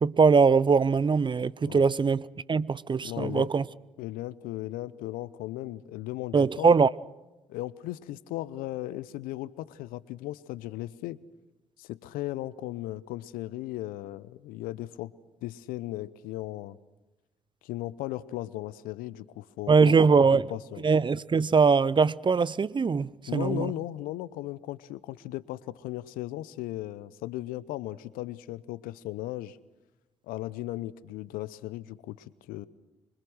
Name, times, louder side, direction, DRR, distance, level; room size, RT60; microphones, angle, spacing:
voice 1, 0.0-3.6 6.3-6.9 19.7-20.5 20.8-23.7, right 5 dB, 30° right, 0.7 m, -22 dB
voice 2, 3.0-3.5 4.0-6.7 7.5-11.2 11.8-15.1 15.4-16.8 17.6-20.8 23.3-29.6 30.2-32.7, left 15 dB, 70° left, 0.8 m, -37 dB
25.5 x 23.0 x 6.4 m
hypercardioid pair, 45°, 15 cm